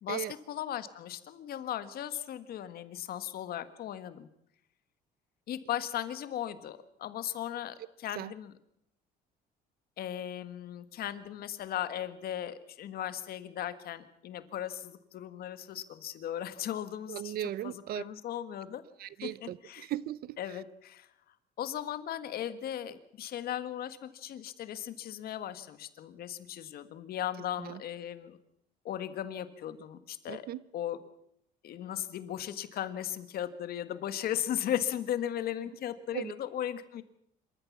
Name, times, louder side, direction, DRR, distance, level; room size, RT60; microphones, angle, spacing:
voice 1, 0.0-4.3 5.5-8.5 10.0-17.3 17.6-18.8 19.2-19.9 20.4-21.1 21.6-28.4 28.8-30.4 30.7-31.0 31.6-37.0, left 11 dB, 65° left, 1.6 m, -37 dB
voice 2, 17.1-18.0 19.0-20.6 27.6-27.8 30.3-30.6 36.1-36.3, right 13 dB, 65° right, 0.7 m, -37 dB
26.5 x 14.0 x 7.3 m
cardioid pair, 110°, 17 cm